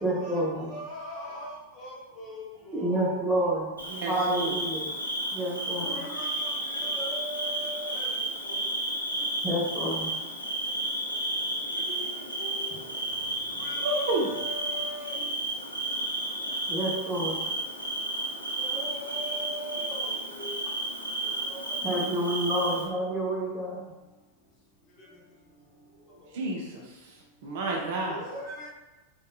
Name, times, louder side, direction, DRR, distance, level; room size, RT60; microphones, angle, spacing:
voice 1, 0.0-0.7 2.7-3.7 4.0-4.9 5.3-6.0 9.4-10.1 16.7-17.4 21.8-23.8, right 1 dB, 10° right, -6 dB, 0.8 m, -29 dB
voice 2, 0.7-2.4 2.8-3.2 5.8-6.5 6.8-8.1 11.7-12.1 12.4-12.8 13.6-15.1 18.6-20.5 21.5-21.6 21.9-22.1 28.2-28.7, equal, 30° left, -5 dB, 0.8 m, -40 dB
Bird / Cricket, 3.8-22.8, right 1 dB, 90° left, 0.4 m, -32 dB
voice 3, 3.9-4.6 13.8-14.3 26.3-26.8 27.4-28.2, right 2 dB, 50° right, -1 dB, 0.4 m, -30 dB
2.6 x 2.2 x 2.4 m, 1.1 s
figure-of-eight pair, 90°, 0 cm